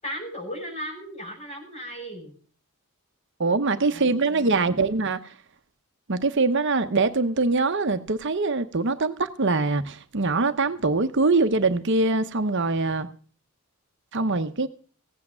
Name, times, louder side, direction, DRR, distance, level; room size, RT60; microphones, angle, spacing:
voice 1, 0.0-2.4 3.7-4.8, equal, 30° left, 6.3 m, -37 dB
voice 2, 3.4-5.2 6.1-13.1 14.1-14.7, right 3 dB, 55° right, 0.8 m, -23 dB
17.0 x 8.6 x 7.4 m
head